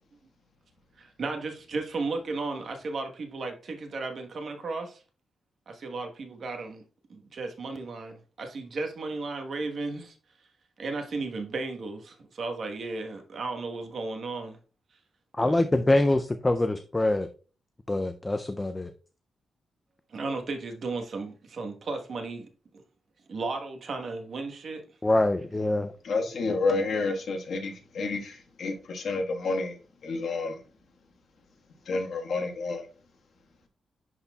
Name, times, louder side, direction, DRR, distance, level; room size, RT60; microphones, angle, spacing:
voice 1, 1.0-5.0 5.7-6.8 7.1-10.2 10.8-14.6 15.4-15.6 20.1-22.5 22.7-22.8 23.3-24.8, right 3 dB, 50° right, 1.2 m, -34 dB
voice 2, 15.4-17.3 17.9-18.9 25.0-25.9, left 2 dB, 15° left, 0.4 m, -24 dB
voice 3, 26.0-29.7 30.0-30.6 31.9-32.9, left 3 dB, 65° left, 1.5 m, -29 dB
11.0 x 4.2 x 2.3 m
wide cardioid pair, 150°, 0 cm